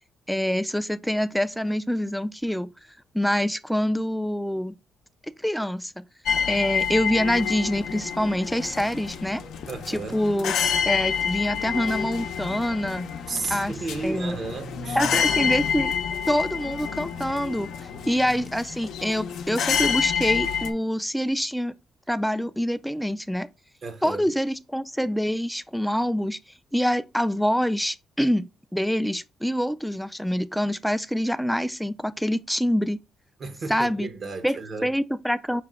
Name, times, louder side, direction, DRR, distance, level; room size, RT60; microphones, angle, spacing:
voice 1, 0.3-2.7 3.1-4.8 5.4-6.0 6.5-9.4 9.9-10.5 10.9-13.1 13.5-13.7 14.0-14.4 15.0-15.9 16.3-17.7 18.1-21.7 22.1-23.5 24.0-26.4 26.7-33.0 33.7-34.1 34.4-34.6 34.8-35.6, equal, ahead, 0.3 m, -25 dB
sound 1, 6.3-20.7, left 7 dB, 80° left, 0.6 m, -28 dB
voice 2, 9.7-10.2 13.3-15.1 23.8-24.3 33.4-35.0, right 3 dB, 50° right, 0.8 m, -33 dB
5.8 x 2.1 x 3.6 m
cardioid pair, 90°, 0 cm